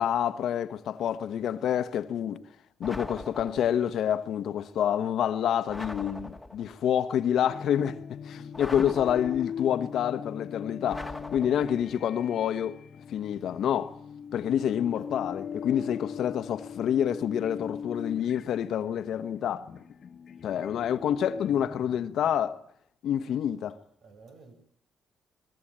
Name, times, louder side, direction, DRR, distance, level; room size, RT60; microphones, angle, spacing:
voice 1, 0.0-2.4 2.8-8.0 8.2-12.8 13.1-14.0 14.3-19.7 20.4-22.6 23.0-23.8, left 9 dB, 70° left, 1.2 m, -28 dB
sound 1, 2.8-3.9 5.7-6.8 8.5-9.7 10.9-12.0, left 2 dB, 5° left, 1.8 m, -41 dB
sound 2, 7.5-22.6, left 7 dB, 55° left, 1.4 m, -41 dB
voice 2, 24.0-24.5, right 3 dB, 65° right, 7.7 m, -54 dB
23.0 x 20.5 x 8.9 m
cardioid pair, 90°, 0 cm